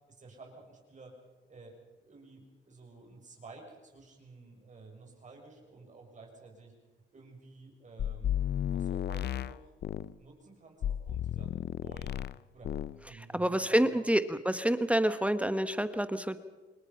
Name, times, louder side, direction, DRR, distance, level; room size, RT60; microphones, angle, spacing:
voice 1, 0.1-1.2 1.5-6.7 7.1-8.4 8.7-9.7 10.2-11.5 11.8-12.8 13.0-14.0, right 3 dB, 40° right, 1 dB, 6.7 m, -52 dB
sound 1, 8.0-10.1 10.8-12.4 12.6-13.0, left 10 dB, 55° left, 0.6 m, -33 dB
voice 2, 13.3-16.4, right 1 dB, 5° right, 11 dB, 1.1 m, -28 dB
27.5 x 21.0 x 5.7 m, 1.2 s
cardioid pair, 90°, 20 cm